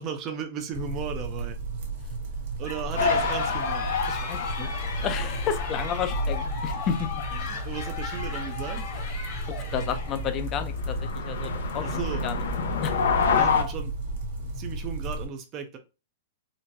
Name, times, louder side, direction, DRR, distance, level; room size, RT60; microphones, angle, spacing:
voice 1, 0.0-1.6 2.6-3.9 7.3-8.8 11.8-12.2 13.2-15.8, right 7 dB, 30° right, 0.5 m, -36 dB
sound 1, 0.7-15.3, right 2 dB, 55° right, 0.9 m, -34 dB
sound 2, 2.6-10.5, left 5 dB, 45° left, 1.1 m, -37 dB
sound 3, 3.0-13.6, left 5 dB, 90° left, 0.7 m, -29 dB
voice 2, 4.1-7.1 9.5-12.4 12.8-13.0, left 8 dB, 30° left, 0.5 m, -32 dB
3.8 x 2.1 x 2.6 m
hypercardioid pair, 145°, 0 cm